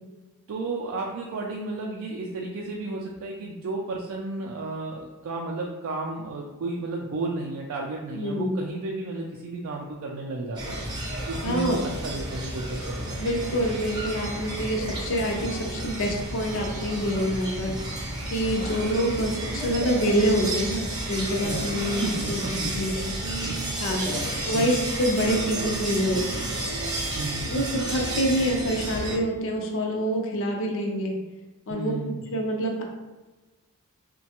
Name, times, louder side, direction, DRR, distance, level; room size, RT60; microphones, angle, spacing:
voice 1, 0.5-10.8 11.3-13.3 17.6-17.8 21.4-21.7 22.0-22.7 23.1-23.6 24.5-24.8 27.1-27.6 31.7-32.2, right 3 dB, 65° right, -1 dB, 0.3 m, -33 dB
voice 2, 8.1-8.6 11.4-11.9 13.2-17.7 18.3-22.4 22.7-23.2 23.8-26.5 27.5-31.2 31.7-32.8, equal, 60° left, 1 dB, 0.5 m, -26 dB
sound 1, 10.6-29.2, right 1 dB, 20° right, 0.5 m, -31 dB
3.1 x 2.2 x 2.8 m, 1.2 s
head